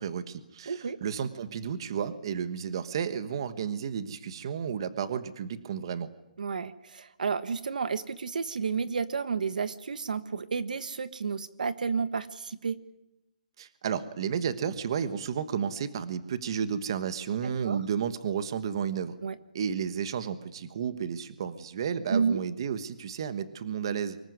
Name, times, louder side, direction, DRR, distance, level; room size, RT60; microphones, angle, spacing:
voice 1, 0.0-6.1 13.6-19.2 19.5-24.2, right 7 dB, 35° right, 12 dB, 1.3 m, -32 dB
voice 2, 0.7-1.0 6.4-12.8 17.6-17.8 19.2-19.3 22.1-22.4, right 5 dB, 65° right, 14 dB, 1.4 m, -31 dB
24.5 x 21.0 x 9.5 m, 0.88 s
hypercardioid pair, 175°, 5 cm